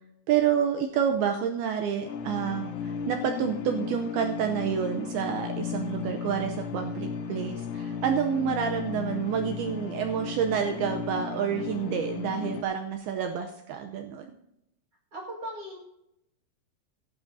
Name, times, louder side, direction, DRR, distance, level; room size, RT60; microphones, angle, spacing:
voice 1, 0.3-14.4, right 8 dB, 80° right, 5 dB, 2.3 m, -28 dB
sound 1, 2.0-12.6, left 7 dB, 80° left, 3.0 m, -35 dB
voice 2, 15.1-15.8, right 1 dB, 45° right, -1 dB, 2.1 m, -38 dB
16.0 x 11.5 x 2.7 m, 0.84 s
omnidirectional pair, 5.1 m